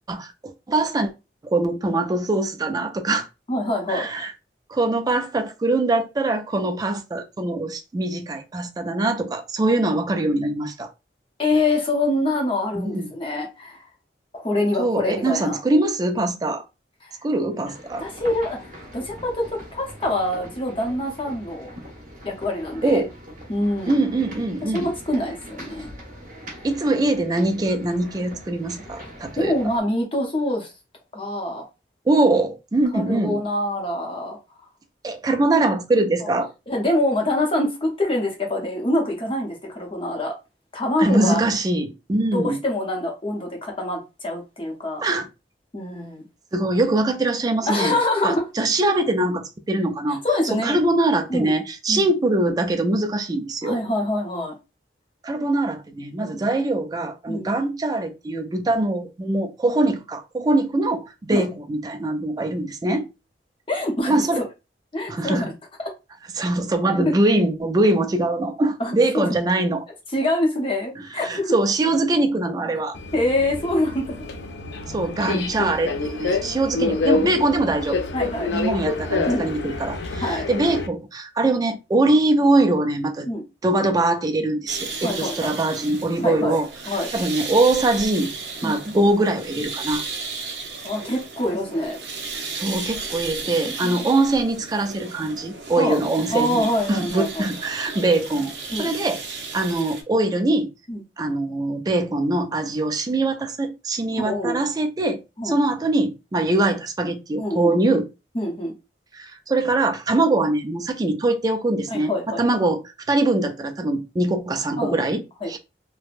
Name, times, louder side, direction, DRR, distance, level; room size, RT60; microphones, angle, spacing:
voice 1, 0.1-1.1 1.4-3.3 3.9-4.3 4.7-10.9 12.7-13.1 14.8-16.6 17.2-18.1 22.8-23.1 23.9-24.9 26.6-29.5 32.1-33.4 35.0-36.5 41.0-42.6 45.0-45.3 46.5-48.0 48.2-50.2 50.5-53.8 55.2-63.1 64.1-64.4 65.1-65.5 66.3-69.8 71.0-73.0 74.9-78.0 78.5-83.3 83.6-86.7 87.1-88.3 88.6-90.0 92.5-98.5 98.8-99.2 99.5-100.7 101.2-105.2 105.4-108.1 109.1-112.1 112.4-112.8 113.1-115.2 115.5-115.6, right 2 dB, 20° right, 0.3 m, -22 dB
voice 2, 3.5-4.1 11.4-13.9 14.3-15.6 17.0-17.1 18.0-21.7 22.2-23.0 23.5-24.0 24.7-25.9 29.4-30.7 31.1-31.7 32.9-34.4 36.2-36.3 36.7-40.3 40.7-41.4 42.3-45.0 45.7-46.2 47.7-48.4 50.1-50.8 51.3-51.5 51.9-52.1 53.6-54.5 57.3-57.5 61.3-61.5 63.7-64.4 64.9-65.5 65.8-65.9 67.0-67.1 68.8-69.2 70.1-71.5 73.1-74.2 75.6-75.7 78.1-78.6 79.3-79.5 80.2-80.5 83.3-83.4 85.0-85.6 86.2-86.6 86.8-87.1 88.6-88.8 90.8-92.0 93.8-94.0 95.8-96.0 96.3-97.5 98.7-98.9 100.9-101.0 104.2-104.6 105.4-105.5 107.4-107.7 108.3-108.7 111.9-112.4 114.8-115.0 115.4-115.6, left 1 dB, 30° left, 0.7 m, -25 dB
sound 1, 17.5-29.8, equal, 45° right, 1.3 m, -42 dB
Subway metro underground, 72.9-80.9, left 3 dB, 75° left, 0.4 m, -27 dB
sound 2, 84.7-100.0, right 4 dB, 70° right, 0.6 m, -34 dB
3.3 x 2.1 x 2.4 m
head